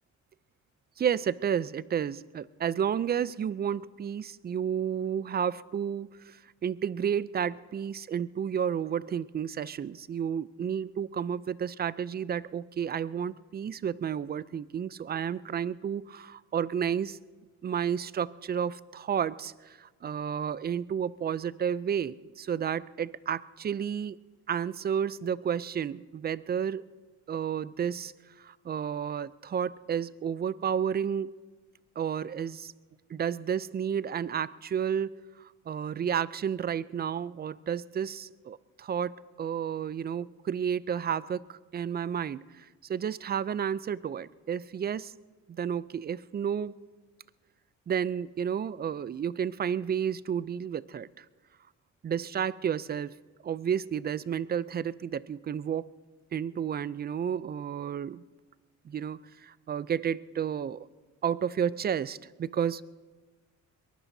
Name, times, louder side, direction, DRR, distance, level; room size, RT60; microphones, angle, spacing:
voice 1, 1.0-17.2 17.6-24.2 24.5-26.8 27.3-28.1 28.4-31.3 32.0-32.7 33.1-45.1 45.5-46.7 47.9-51.2 52.0-53.1 53.4-55.8 56.3-58.2 58.8-60.9 61.2-62.8, right 8 dB, 35° right, 19 dB, 0.4 m, -31 dB
23.0 x 19.5 x 2.7 m, 1.3 s
cardioid pair, 90°, 30 cm